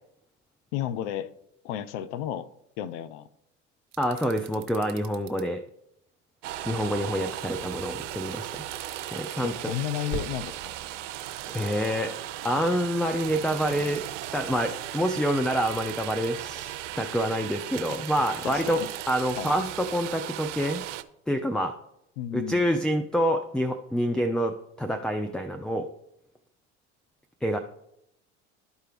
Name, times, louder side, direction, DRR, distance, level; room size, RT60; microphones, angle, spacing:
voice 1, 0.7-1.3 1.6-2.5 2.8-3.3 9.4-10.7 18.2-18.9 19.4-19.5 22.2-22.7, left 11 dB, 65° left, 14 dB, 0.7 m, -33 dB
sound 1, 3.9-5.4 8.6-9.4 11.1-11.9 13.2-14.3 15.5-16.3 17.9-19.5, right 16 dB, 55° right, 1.0 m, -48 dB
voice 2, 4.0-5.6 6.7-8.6 9.1-9.5 11.5-12.1 12.4-14.0 14.3-18.8 19.1-20.8 21.3-21.8 22.3-25.9 27.4-27.6, equal, ahead, 7 dB, 0.4 m, -27 dB
sound 2, 6.4-21.0, right 13 dB, 75° right, 0.6 m, -37 dB
sound 3, 10.1-15.8, right 2 dB, 30° left, 2.2 m, -45 dB
12.5 x 4.5 x 3.4 m, 0.79 s
hypercardioid pair, 75°, 37 cm